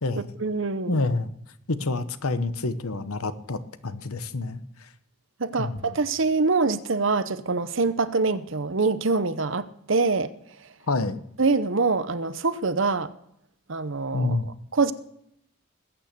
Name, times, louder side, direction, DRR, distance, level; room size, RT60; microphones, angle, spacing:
voice 1, 0.2-1.0 5.4-10.3 11.4-13.1 13.7-14.4 14.7-14.9, right 3 dB, 60° right, 14 dB, 0.8 m, -24 dB
voice 2, 0.9-1.3 1.7-4.6 5.6-5.9 10.9-11.2 14.1-14.5, left 3 dB, 80° left, 12 dB, 1.1 m, -27 dB
20.5 x 9.1 x 6.7 m, 0.75 s
head